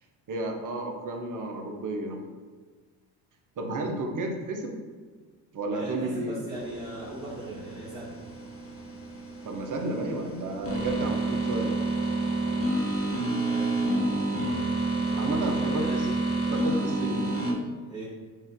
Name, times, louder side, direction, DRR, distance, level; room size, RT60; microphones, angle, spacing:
voice 1, 0.3-2.2 3.6-4.8 5.5-6.4 9.4-11.8 15.2-15.9 16.5-17.3, right 2 dB, 40° right, 3 dB, 0.9 m, -32 dB
voice 2, 5.7-8.2 13.4-14.6 15.1-16.2 17.9-18.0, right 1 dB, 10° right, -9 dB, 1.2 m, -39 dB
sound 1, 6.5-17.5, right 2 dB, 30° left, 1.2 m, -29 dB
5.4 x 2.6 x 3.6 m, 1.5 s
supercardioid pair, 70°, 48 cm